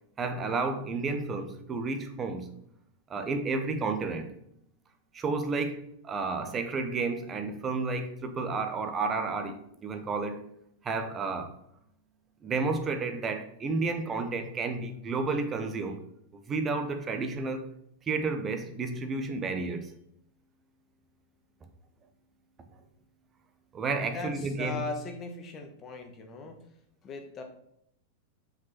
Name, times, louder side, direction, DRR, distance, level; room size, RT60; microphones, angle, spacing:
voice 1, 0.2-2.6 3.1-4.3 5.1-10.4 10.8-11.6 12.4-16.0 16.5-17.7 18.1-19.9 23.7-24.8, right 3 dB, 20° right, 7 dB, 1.1 m, -31 dB
voice 2, 24.0-26.7 27.0-27.4, left 3 dB, 30° left, 4 dB, 1.5 m, -39 dB
5.9 x 5.2 x 5.9 m, 0.74 s
figure-of-eight pair, 90°, 0 cm